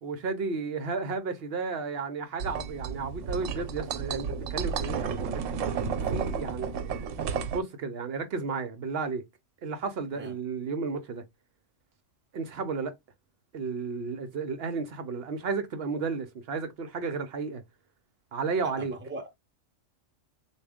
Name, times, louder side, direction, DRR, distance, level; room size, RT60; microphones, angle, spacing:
voice 1, 0.0-5.4 6.0-7.1 7.5-9.2 9.6-11.2 12.3-12.9 13.5-17.6 18.3-18.9, right 4 dB, 60° right, 0.8 m, -33 dB
sound 1, 2.4-7.6, right 6 dB, 85° right, 1.0 m, -32 dB
voice 2, 18.6-19.4, right 1 dB, 10° right, 0.5 m, -40 dB
3.5 x 2.3 x 3.4 m
omnidirectional pair, 1.3 m